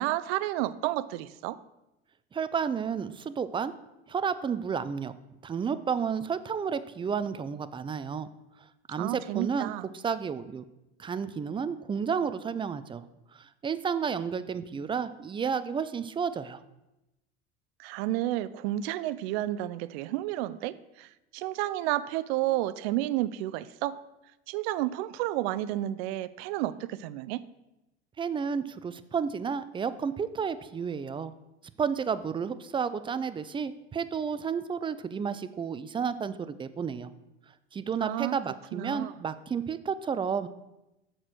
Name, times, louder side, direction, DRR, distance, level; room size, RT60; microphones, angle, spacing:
voice 1, 0.0-1.6 9.0-9.8 17.8-24.0 24.5-27.4 38.0-38.4 38.7-39.1, right 15 dB, 70° right, 16 dB, 0.5 m, -31 dB
voice 2, 2.3-3.7 4.1-5.1 5.4-8.3 8.9-10.6 11.0-13.0 13.3-16.6 28.2-31.3 31.8-37.1 37.7-40.5, right 6 dB, 15° right, 13 dB, 0.4 m, -31 dB
6.5 x 4.6 x 6.3 m, 0.94 s
hypercardioid pair, 90°, 32 cm